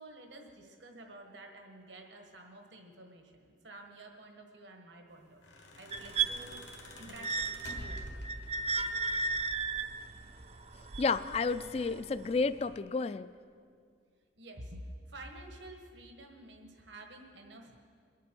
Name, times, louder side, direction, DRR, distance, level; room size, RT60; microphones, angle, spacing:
voice 1, 0.0-8.0 14.4-17.8, right 1 dB, 80° right, 3 dB, 1.5 m, -50 dB
sound 1, 5.2-8.8 10.0-10.7 11.1-11.4, left 1 dB, 75° left, 1.5 m, -47 dB
sound 2, 5.9-12.0 12.7-12.8, right 4 dB, 35° right, 0.4 m, -35 dB
voice 2, 11.0-13.3, left 4 dB, 35° left, 14 dB, 0.3 m, -31 dB
22.5 x 8.3 x 4.5 m, 2.2 s
head